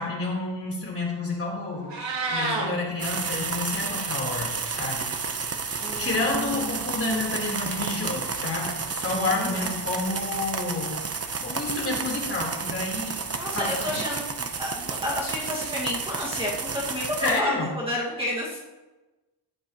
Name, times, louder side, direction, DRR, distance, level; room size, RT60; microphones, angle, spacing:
voice 1, 0.0-5.4 6.0-11.0 11.4-13.2 13.5-14.0 17.2-17.7, left 2 dB, 30° left, -3 dB, 3.7 m, -29 dB
Meow, 1.7-2.7, right 3 dB, 85° right, 2.7 m, -28 dB
voice 2, 2.5-2.8 5.8-6.8 9.3-9.7 13.1-18.6, left 1 dB, 15° right, -5 dB, 1.9 m, -31 dB
sound 1, 3.0-17.4, right 5 dB, 35° right, 0.9 m, -31 dB
13.5 x 10.0 x 3.0 m, 1.1 s
wide cardioid pair, 125°, 42 cm